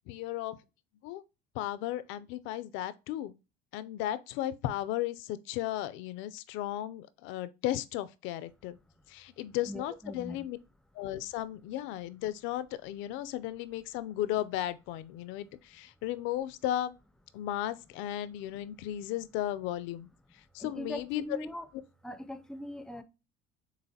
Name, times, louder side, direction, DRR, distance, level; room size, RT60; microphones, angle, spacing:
voice 1, 0.1-0.6 1.0-1.2 1.5-3.4 3.7-8.8 9.1-10.6 11.0-17.0 17.3-20.1 20.5-21.2, left 13 dB, 70° left, 0.4 m, -35 dB
voice 2, 9.7-10.5 20.6-21.7 22.0-23.0, left 1 dB, 5° left, 0.4 m, -41 dB
6.9 x 2.5 x 2.7 m
cardioid pair, 140°, 21 cm